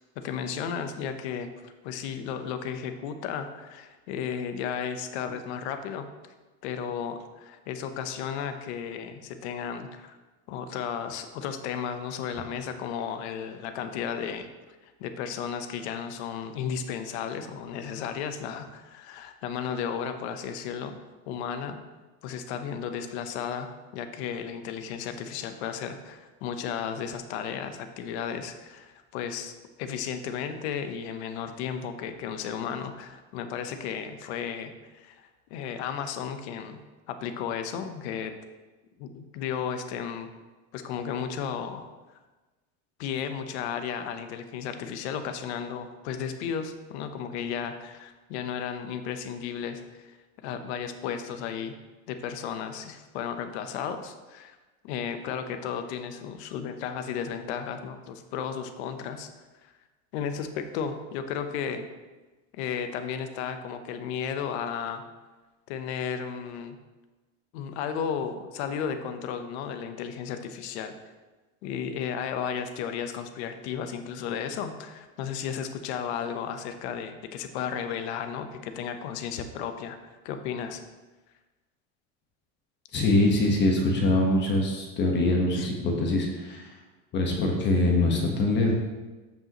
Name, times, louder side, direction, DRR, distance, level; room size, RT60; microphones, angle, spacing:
voice 1, 0.2-6.1 6.6-10.2 10.5-14.5 14.8-20.9 21.3-21.8 22.2-29.5 29.8-36.8 37.1-38.3 39.0-40.3 40.7-41.9 43.0-50.2 50.4-51.7 52.1-54.6 54.8-59.3 59.6-59.7 60.1-61.9 62.5-65.0 65.7-66.8 67.5-70.9 71.6-80.0 80.2-80.8 85.6-85.7, left 7 dB, 80° left, 8 dB, 0.9 m, -34 dB
voice 2, 82.9-86.8 87.1-88.7, left 2 dB, 35° left, 0 dB, 1.3 m, -24 dB
14.0 x 5.4 x 3.0 m, 1.2 s
supercardioid pair, 145°, 33 cm